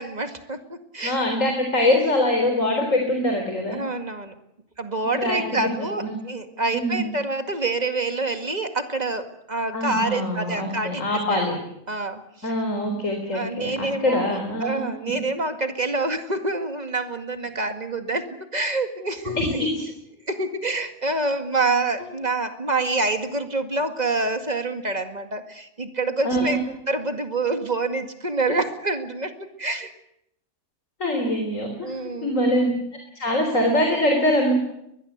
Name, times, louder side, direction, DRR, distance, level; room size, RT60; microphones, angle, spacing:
voice 1, 0.0-1.3 3.7-4.3 4.8-11.0 11.3-11.6 11.9-12.5 13.3-19.7 20.3-26.6 26.9-29.3 29.6-29.9 31.8-32.4, right 2 dB, 30° right, 7 dB, 2.2 m, -27 dB
voice 2, 1.0-3.8 5.2-5.7 6.0-6.2 6.7-7.1 9.7-11.5 12.4-14.8 19.4-19.7 26.2-26.6 31.0-31.9 32.2-32.7 33.2-34.5, left 1 dB, 55° left, 3 dB, 4.2 m, -23 dB
22.0 x 21.5 x 8.1 m, 0.80 s
omnidirectional pair, 1.6 m